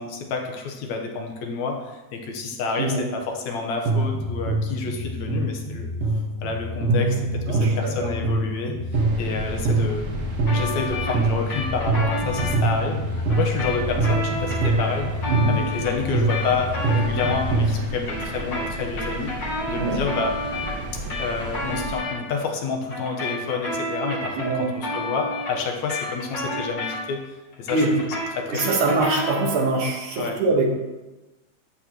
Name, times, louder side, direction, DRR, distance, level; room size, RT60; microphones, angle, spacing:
voice 1, 0.0-5.9 6.4-8.8 9.2-10.1 10.5-19.3 19.7-20.5 20.9-28.8 30.2-30.4, left 4 dB, 75° left, 3 dB, 2.4 m, -29 dB
sound 1, 3.9-17.9, right 2 dB, 65° right, 2.4 m, -25 dB
voice 2, 7.5-8.1 15.3-15.6 19.8-20.0 24.4-24.7 27.7-28.0 28.5-30.6, right 3 dB, 85° right, 1 dB, 2.9 m, -23 dB
sound 2, 8.9-22.0, right 2 dB, 40° right, 1.5 m, -35 dB
sound 3, 10.5-12.6 13.3-17.6 17.9-22.2 22.9-27.2 27.5-29.7, left 1 dB, 50° left, 4.2 m, -31 dB
12.0 x 8.8 x 3.1 m, 1.1 s
omnidirectional pair, 3.4 m